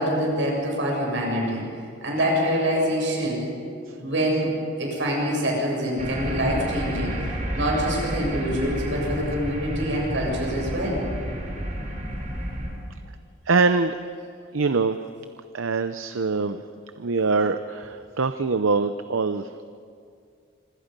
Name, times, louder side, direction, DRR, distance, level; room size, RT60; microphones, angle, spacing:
voice 1, 0.0-1.7 2.0-3.5 4.0-7.1 7.5-11.0, equal, 65° right, -1 dB, 7.6 m, -25 dB
sound 1, 6.0-12.7, equal, 40° right, 4.7 m, -30 dB
voice 2, 13.5-14.0 14.5-15.0 15.5-16.6 17.0-19.7, right 4 dB, 85° right, 10 dB, 0.7 m, -23 dB
26.5 x 25.5 x 5.4 m, 2.3 s
head